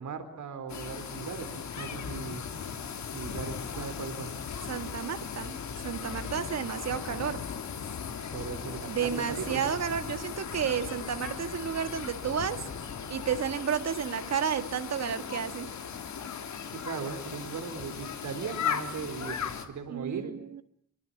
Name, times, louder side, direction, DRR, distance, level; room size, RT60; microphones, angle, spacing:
voice 1, 0.0-2.4 3.1-4.3 8.3-9.6 16.7-19.4 19.7-20.4, right 6 dB, 85° right, 9 dB, 4.3 m, -38 dB
sound 1, 0.7-19.7, left 7 dB, 75° left, 3.5 m, -37 dB
voice 2, 4.7-5.6 5.8-7.4 8.9-12.6 12.8-15.7 19.9-20.6, right 8 dB, 60° right, 10 dB, 2.1 m, -32 dB
27.0 x 24.5 x 8.8 m, 0.68 s
wide cardioid pair, 165°, 29 cm